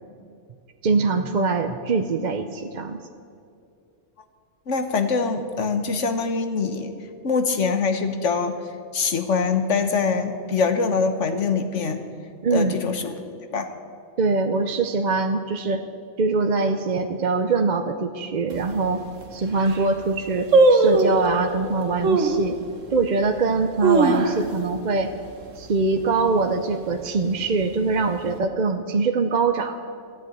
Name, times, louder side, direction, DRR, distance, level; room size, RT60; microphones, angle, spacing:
voice 1, 0.8-3.0 12.4-12.8 14.2-15.9 16.2-19.0 19.3-22.6 22.9-25.1 25.6-29.8, right 4 dB, 45° right, 6 dB, 0.7 m, -23 dB
voice 2, 4.7-6.9 7.2-8.6 8.9-12.0 12.5-13.2 13.5-13.7, left 5 dB, 70° left, 7 dB, 1.5 m, -23 dB
sound 1, 18.5-18.6 19.2-19.3 19.5-19.9 20.5-21.3 22.0-22.4 22.9-23.0 23.6-24.7 25.0-25.1 25.4-25.8 26.2-26.6 27.2-28.0 28.2-28.3, right 3 dB, 85° right, 1.6 m, -19 dB
14.0 x 9.8 x 9.2 m, 2.4 s
omnidirectional pair, 1.3 m